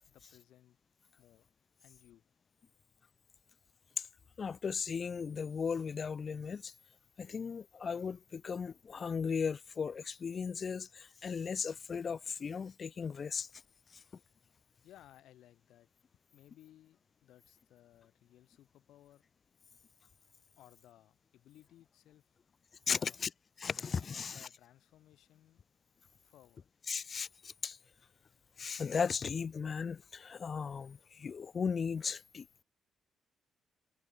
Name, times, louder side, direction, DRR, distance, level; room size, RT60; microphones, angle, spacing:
voice 1, 0.1-0.8 1.2-1.5 1.8-2.3 14.8-15.9 16.3-19.2 20.6-22.4 22.9-23.2 24.1-25.6 26.2-26.7, left 13 dB, 80° left, 2.8 m, -61 dB
voice 2, 4.4-6.7 7.2-13.5 13.9-14.0 22.9-23.3 23.6-24.5 26.9-27.8 28.6-32.5, left 6 dB, 45° left, 0.4 m, -36 dB
cardioid pair, 90°, 0 cm